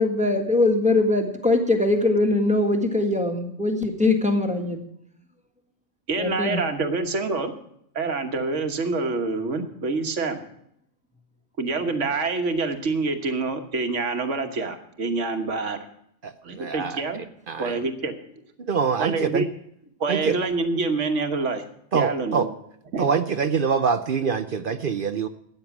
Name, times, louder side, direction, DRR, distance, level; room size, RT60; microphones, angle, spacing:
voice 1, 0.0-4.8 6.2-6.6, left 2 dB, 5° right, 4 dB, 1.6 m, -22 dB
voice 2, 6.1-7.5 7.9-10.4 11.6-15.8 16.4-17.2 17.6-18.1 19.0-19.5 20.0-21.6 21.9-22.5 22.9-23.0, right 3 dB, 70° right, 6 dB, 1.6 m, -26 dB
voice 3, 16.2-17.0 17.5-17.8 18.6-19.4 20.1-20.3 21.9-22.5 23.0-25.3, right 6 dB, 55° right, 11 dB, 0.7 m, -24 dB
13.5 x 9.1 x 6.0 m, 0.73 s
omnidirectional pair, 1.3 m